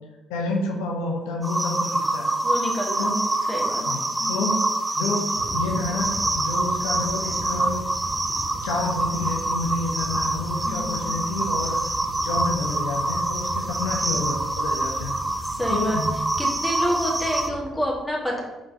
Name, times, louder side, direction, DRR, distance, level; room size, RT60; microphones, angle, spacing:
voice 1, 0.3-2.3 3.0-3.2 3.9-4.0 4.3-4.6 4.9-7.8 8.6-11.8 12.2-15.2 15.7-16.1, left 3 dB, 70° left, 0 dB, 0.5 m, -29 dB
sound 1, 1.4-17.5, right 2 dB, 15° right, 0.4 m, -26 dB
voice 2, 2.4-3.2 3.5-4.5 10.6-11.2 15.5-16.0 16.4-18.4, equal, 5° left, -3 dB, 1.4 m, -29 dB
sound 2, 5.4-17.9, right 2 dB, 50° right, 0.7 m, -38 dB
4.9 x 3.7 x 2.7 m, 1.1 s
figure-of-eight pair, 45°, 0 cm